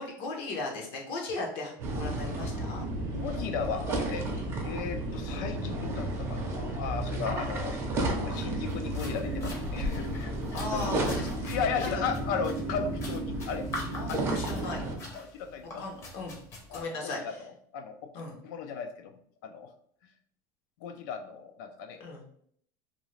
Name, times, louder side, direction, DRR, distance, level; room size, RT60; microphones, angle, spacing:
voice 1, 0.0-2.8 4.3-4.5 10.5-11.3 11.8-12.0 13.9-14.8 15.8-16.4 16.7-17.4 18.1-18.4 22.0-22.3, left 2 dB, 60° left, 0 dB, 0.7 m, -37 dB
sound 1, 1.8-14.9, right 1 dB, 25° right, 0.5 m, -33 dB
sound 2, 1.8-9.3, right 3 dB, 90° right, 0.6 m, -40 dB
voice 2, 3.1-4.3 4.6-11.0 11.4-13.7 14.1-14.2 15.1-15.9 16.7-17.3 17.7-18.1 18.4-19.1 19.4-19.7 20.8-22.0, left 6 dB, 80° left, 8 dB, 0.4 m, -36 dB
sound 3, 8.7-16.8, left 2 dB, 30° left, 0.7 m, -45 dB
2.6 x 2.4 x 3.1 m, 0.64 s
cardioid pair, 155°, 10 cm